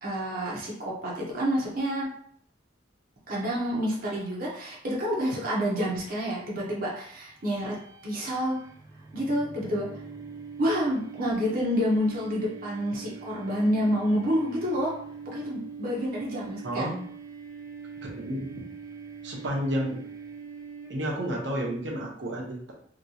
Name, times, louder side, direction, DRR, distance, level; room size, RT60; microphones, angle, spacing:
voice 1, 0.0-2.1 3.3-7.7 8.0-8.6 9.1-9.9 10.6-14.9 15.2-16.8, equal, 50° right, -5 dB, 0.8 m, -28 dB
sound 1, 7.3-21.3, right 5 dB, 20° right, 0.4 m, -43 dB
voice 2, 16.6-17.0 18.0-18.5 19.2-20.0 20.9-22.7, equal, 80° right, -2 dB, 0.9 m, -31 dB
3.0 x 2.9 x 2.7 m, 0.62 s
head